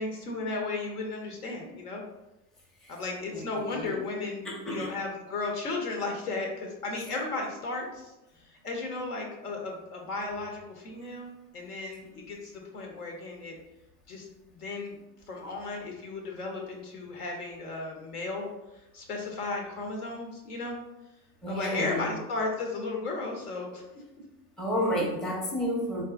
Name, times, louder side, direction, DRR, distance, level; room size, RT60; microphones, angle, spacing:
voice 1, 0.0-2.0 2.9-8.1 8.4-13.5 14.1-15.0 15.3-18.5 18.9-20.8 21.5-23.8, left 3 dB, 75° left, 0 dB, 1.0 m, -35 dB
voice 2, 3.3-4.0 4.4-5.0 7.0-7.1 21.4-22.1 24.6-26.0, equal, ahead, -3 dB, 0.5 m, -31 dB
3.8 x 2.7 x 2.4 m, 0.96 s
figure-of-eight pair, 80°, 46 cm